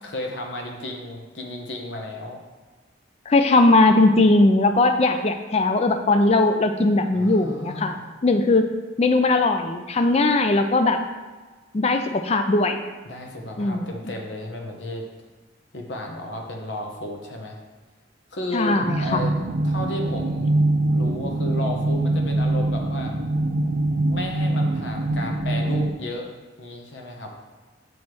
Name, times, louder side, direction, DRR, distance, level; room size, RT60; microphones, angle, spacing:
voice 1, 0.0-2.4 7.1-8.0 13.0-15.0 15.7-17.6 18.3-19.3 19.6-23.1 24.1-26.3 26.6-27.3, left 1 dB, 70° left, 1 dB, 1.0 m, -33 dB
voice 2, 3.3-7.9 8.2-8.7 9.0-11.0 11.7-12.8 13.6-13.9 18.5-19.2, left 2 dB, 35° left, 7 dB, 0.4 m, -19 dB
sound 1, 18.8-25.9, right 2 dB, 80° right, 0.6 m, -23 dB
7.0 x 3.2 x 6.0 m, 1.3 s
head